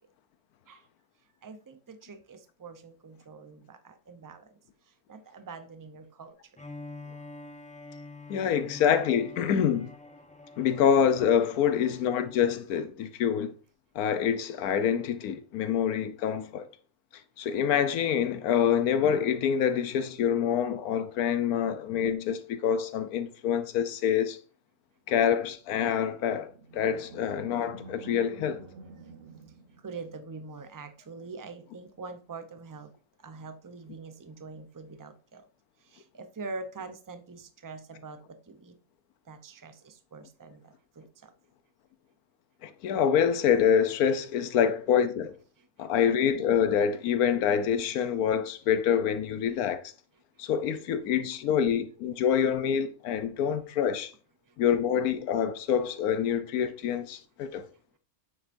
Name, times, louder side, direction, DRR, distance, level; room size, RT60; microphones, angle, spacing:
voice 1, 1.4-4.5 5.1-6.4 29.8-32.9 33.2-35.5 35.8-38.8 39.3-41.3 45.6-45.7, right 4 dB, 25° right, 0.4 m, -44 dB
Bowed string instrument, 6.5-12.6, left 2 dB, 5° left, 0.7 m, -47 dB
voice 2, 8.3-9.9 10.6-13.5 13.9-16.7 17.4-24.4 25.1-28.6 42.6-45.3 45.8-49.8 50.4-54.1 54.6-57.6, left 8 dB, 85° left, 1.2 m, -26 dB
Animal, 26.1-30.4, right 3 dB, 50° right, 0.9 m, -48 dB
8.8 x 7.7 x 2.6 m
omnidirectional pair, 1.5 m